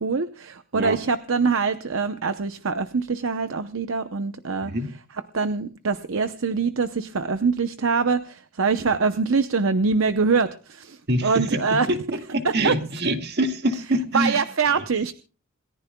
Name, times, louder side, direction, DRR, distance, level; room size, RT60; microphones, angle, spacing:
voice 1, 0.0-4.7 5.3-11.9 12.4-12.8 14.1-15.1, right 4 dB, 65° right, 0.8 m, -24 dB
voice 2, 11.1-14.4 14.8-14.9, right 1 dB, 50° right, 1.9 m, -25 dB
27.5 x 14.5 x 2.3 m
head